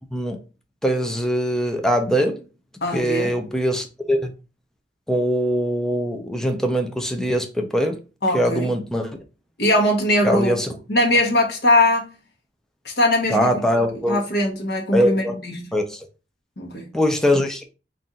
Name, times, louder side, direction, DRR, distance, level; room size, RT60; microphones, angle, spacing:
voice 1, 0.8-2.4 2.9-4.3 5.1-8.0 8.3-9.2 10.2-10.7 13.3-14.2 14.9-15.4 15.7-16.1 16.9-17.6, equal, 5° left, 0.5 m, -22 dB
voice 2, 2.8-3.3 8.2-8.7 9.6-10.6 10.9-12.1 12.8-13.6 14.1-15.7 16.6-16.9, left 1 dB, 65° left, 1.1 m, -20 dB
4.1 x 2.5 x 3.7 m
head